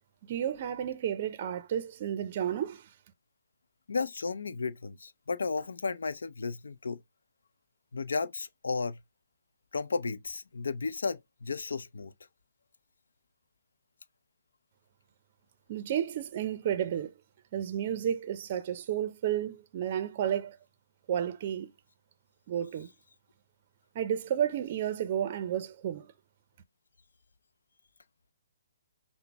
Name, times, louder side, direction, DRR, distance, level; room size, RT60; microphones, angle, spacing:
voice 1, 0.3-2.9 15.7-17.1 17.5-20.6 21.1-21.7 22.5-22.9 23.9-26.1, right 10 dB, 40° right, 0.5 m, -32 dB
voice 2, 3.9-7.0 7.9-9.0 9.7-12.1, left 4 dB, 80° left, 0.5 m, -33 dB
5.8 x 2.0 x 3.4 m
hypercardioid pair, 150°, 0 cm